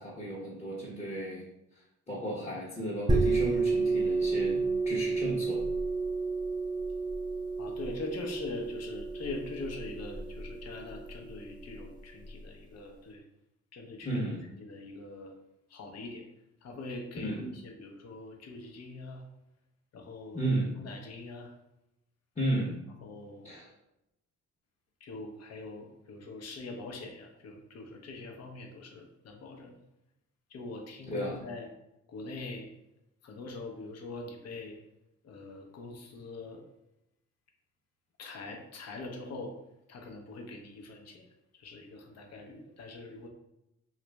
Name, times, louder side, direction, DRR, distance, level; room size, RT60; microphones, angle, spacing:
voice 1, 0.0-1.4 2.1-5.6 14.0-14.4 17.2-17.5 20.3-20.7 22.4-22.8 23.4-23.7 31.1-31.4, right 1 dB, 20° left, -8 dB, 0.9 m, -33 dB
sound 1, 3.1-12.4, right 3 dB, 15° right, 0.4 m, -31 dB
voice 2, 7.6-13.2 13.7-14.1 14.6-15.3 15.7-16.3 16.6-19.2 19.9-20.5 20.8-21.5 23.0-23.5 25.0-29.8 30.5-31.7 32.1-32.7 33.2-34.8 35.2-36.6 38.2-39.5 39.9-41.2 41.5-43.3, left 2 dB, 55° left, 2 dB, 0.8 m, -43 dB
3.0 x 2.4 x 3.3 m, 0.86 s
cardioid pair, 90°, 30 cm